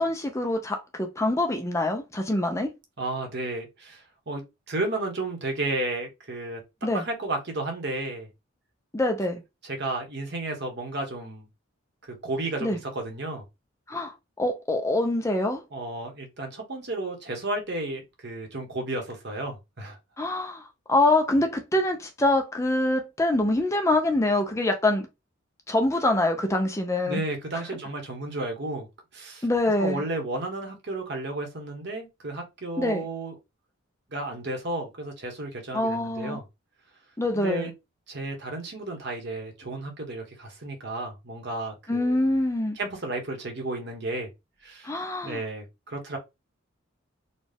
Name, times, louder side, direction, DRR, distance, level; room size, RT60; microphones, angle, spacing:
voice 1, 0.0-2.7 6.8-7.0 8.9-9.4 12.6-12.8 13.9-15.6 20.2-25.1 25.7-27.2 29.4-30.0 32.8-33.0 35.7-36.4 37.2-37.7 41.9-42.8 44.8-45.4, left 1 dB, 15° left, 0.5 m, -25 dB
voice 2, 3.0-6.6 6.9-8.3 9.6-11.5 12.0-13.4 15.7-20.0 27.0-28.9 29.1-29.4 29.8-33.4 34.1-36.4 37.3-37.7 38.1-42.3 42.8-44.3 44.6-44.9 45.2-46.2, right 2 dB, 55° right, 1.2 m, -33 dB
4.1 x 2.3 x 3.4 m
head